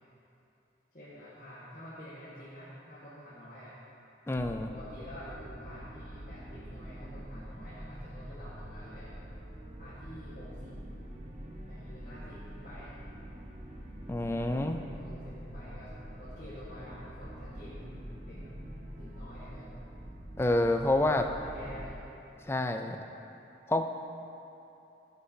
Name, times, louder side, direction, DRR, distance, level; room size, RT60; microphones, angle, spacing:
voice 1, 0.9-3.8 4.7-9.1 9.8-10.7 11.7-13.0 14.3-19.7 20.9-22.0, equal, 45° left, -10 dB, 1.4 m, -48 dB
voice 2, 4.3-4.7 14.1-14.8 20.4-21.3 22.5-23.0 23.7-23.8, left 1 dB, 15° left, 5 dB, 0.3 m, -28 dB
sound 1, 4.3-21.9, equal, 35° right, 0.8 m, -45 dB
13.5 x 6.8 x 2.7 m, 2.8 s
head